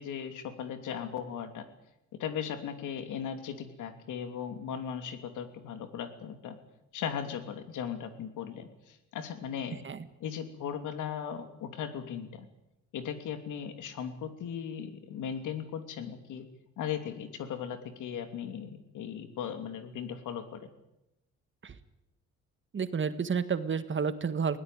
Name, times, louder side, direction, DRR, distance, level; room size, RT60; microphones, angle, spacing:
voice 1, 0.0-1.6 2.2-6.6 6.9-9.8 10.2-12.5 12.9-16.4 16.8-20.7, left 8 dB, 80° left, 8 dB, 2.9 m, -37 dB
voice 2, 22.7-24.6, right 6 dB, 40° right, 11 dB, 1.7 m, -30 dB
20.5 x 17.5 x 9.3 m, 0.90 s
cardioid pair, 90°, 30 cm